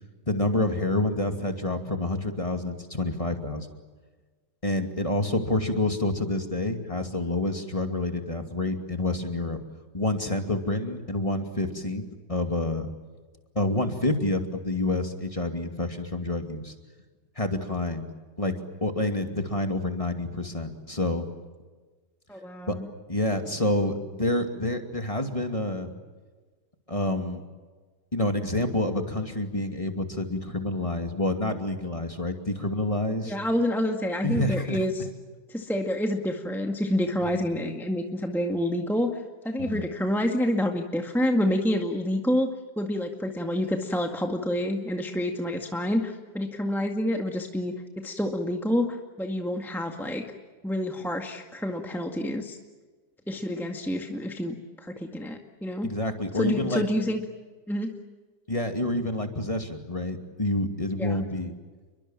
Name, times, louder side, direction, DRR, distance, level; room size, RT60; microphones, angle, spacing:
voice 1, 0.3-3.7 4.6-9.6 9.9-12.0 12.3-12.9 13.5-16.7 17.4-18.1 18.4-18.5 18.8-21.3 22.7-22.8 23.1-25.9 26.9-27.4 28.1-33.3 34.2-34.8 39.6-39.9 55.8-56.8 58.5-61.5, left 1 dB, 20° left, 5 dB, 2.6 m, -28 dB
voice 2, 22.3-22.8 33.2-35.1 35.5-42.5 42.8-50.2 50.6-52.6 53.3-55.9 56.3-57.2 57.7-57.9 61.0-61.2, left 1 dB, ahead, 2 dB, 1.8 m, -28 dB
29.5 x 23.5 x 7.6 m, 1.4 s
omnidirectional pair, 1.9 m